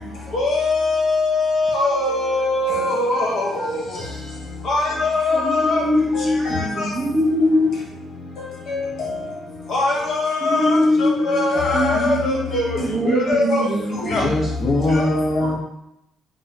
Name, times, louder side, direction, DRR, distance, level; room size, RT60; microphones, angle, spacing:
voice 1, 0.3-3.8 4.6-5.8 6.1-6.9 8.7-9.2 9.7-12.8 13.0-13.7 14.0-14.2 15.1-15.2, left 2 dB, 60° left, -2 dB, 1.3 m, -21 dB
voice 2, 5.3-7.8 10.4-14.4, left 1 dB, 50° right, 3 dB, 0.7 m, -22 dB
voice 3, 14.1-15.5, left 1 dB, 40° left, -5 dB, 1.0 m, -21 dB
4.1 x 2.2 x 4.4 m, 0.82 s
hypercardioid pair, 55°, 0 cm